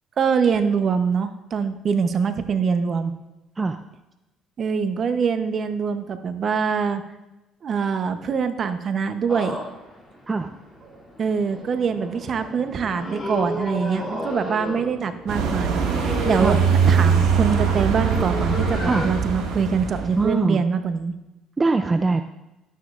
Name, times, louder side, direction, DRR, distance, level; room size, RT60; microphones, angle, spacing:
voice 1, 0.2-3.1 4.6-7.0 7.6-9.6 11.2-16.6 16.9-21.2, right 6 dB, 45° right, 9 dB, 0.8 m, -24 dB
sound 1, 9.3-19.1, left 1 dB, 5° left, 2.8 m, -33 dB
voice 2, 10.3-10.6 16.3-16.6 18.8-19.1 20.2-20.6 21.6-22.2, right 3 dB, 25° right, 8 dB, 0.4 m, -22 dB
sound 2, 15.3-20.3, right 6 dB, 85° right, 1.9 m, -22 dB
12.0 x 9.3 x 2.5 m, 1.0 s
cardioid pair, 95°, 0 cm